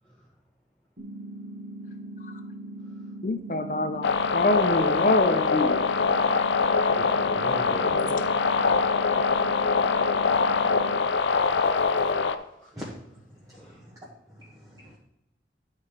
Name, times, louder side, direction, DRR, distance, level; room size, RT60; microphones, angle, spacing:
sound 1, 1.0-11.0, right 1 dB, 60° right, 1.3 m, -40 dB
voice 1, 3.2-5.8, left 2 dB, 45° left, 7 dB, 0.7 m, -25 dB
sound 2, 4.0-12.4, left 5 dB, 80° left, 0.5 m, -23 dB
voice 2, 7.0-8.5 10.6-12.3 12.6-12.7 13.5-13.8, equal, 5° left, -6 dB, 1.0 m, -41 dB
voice 3, 13.4-14.0 14.3-15.0, equal, 20° right, -5 dB, 1.3 m, -44 dB
10.5 x 4.3 x 4.9 m, 0.85 s
head